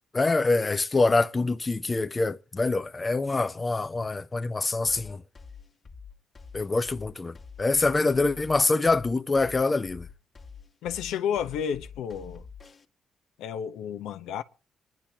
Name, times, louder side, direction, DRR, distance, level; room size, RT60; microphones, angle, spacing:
voice 1, 0.1-5.2 6.5-10.1, left 3 dB, 25° left, 0.6 m, -25 dB
sound 1, 4.9-12.9, left 5 dB, 40° left, 1.4 m, -46 dB
voice 2, 10.8-12.4 13.4-14.4, left 8 dB, 85° left, 0.8 m, -31 dB
27.5 x 10.5 x 2.8 m
cardioid pair, 90°, 0 cm